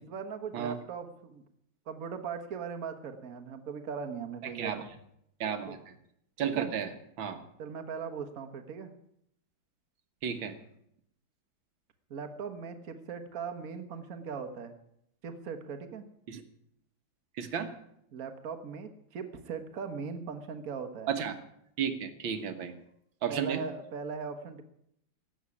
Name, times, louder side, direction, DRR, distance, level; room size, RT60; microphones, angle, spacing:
voice 1, 0.0-1.4 1.9-4.9 5.7-5.8 6.4-6.7 7.6-8.9 12.1-14.8 15.2-16.0 18.1-21.1 23.3-24.6, right 6 dB, 50° right, 7 dB, 1.6 m, -39 dB
voice 2, 4.4-4.8 5.4-5.8 6.4-6.9 7.2-7.4 10.2-10.6 16.3-16.4 17.4-17.7 21.1-21.4 21.8-22.7 23.2-23.6, right 8 dB, 75° right, 9 dB, 2.1 m, -33 dB
16.0 x 7.4 x 9.7 m, 0.75 s
omnidirectional pair, 2.2 m